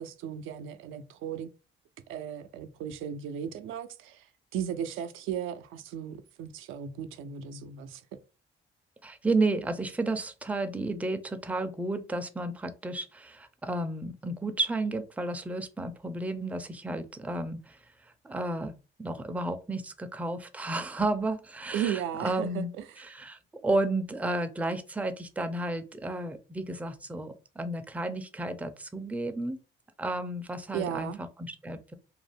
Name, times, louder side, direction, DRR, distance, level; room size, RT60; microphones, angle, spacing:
voice 1, 0.0-1.5 2.1-4.3 4.5-8.0 21.7-22.6 30.7-31.2, right 9 dB, 85° right, 0.4 m, -35 dB
voice 2, 9.0-17.8 18.2-22.7 23.0-29.6 30.0-32.0, right 2 dB, 5° right, 0.4 m, -32 dB
2.5 x 2.0 x 3.3 m
cardioid pair, 90°, 20 cm